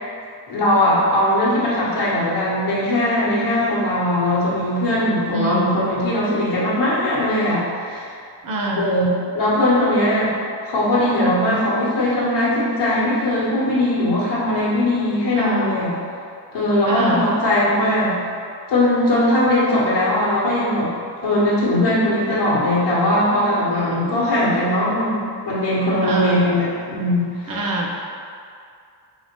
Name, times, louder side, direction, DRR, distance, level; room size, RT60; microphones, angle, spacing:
voice 1, 0.5-8.1 8.8-9.1 9.3-10.3 10.6-15.9 16.5-18.1 18.7-20.9 21.2-27.7, left 1 dB, 65° left, -8 dB, 1.3 m, -20 dB
voice 2, 5.3-5.7 8.4-8.9 15.3-15.8 16.8-17.3 23.7-24.2 26.0-26.5 27.5-27.9, right 1 dB, 50° right, -1 dB, 0.7 m, -25 dB
4.1 x 3.7 x 3.0 m, 2.3 s
cardioid pair, 140°, 43 cm